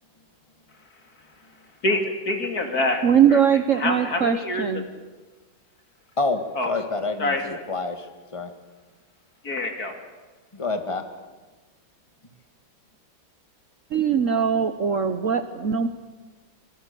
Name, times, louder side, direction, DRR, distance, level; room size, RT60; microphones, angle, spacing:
voice 1, 1.8-3.0 3.3-3.4 3.8-4.8 6.6-6.7 7.2-7.4 9.4-9.9, left 2 dB, 50° left, 4 dB, 3.1 m, -25 dB
voice 2, 3.0-4.9 13.9-15.9, right 8 dB, 50° right, 9 dB, 1.1 m, -21 dB
voice 3, 6.7-8.5 10.5-11.0, left 3 dB, 15° left, 7 dB, 1.8 m, -28 dB
26.0 x 22.0 x 6.9 m, 1.3 s
omnidirectional pair, 2.1 m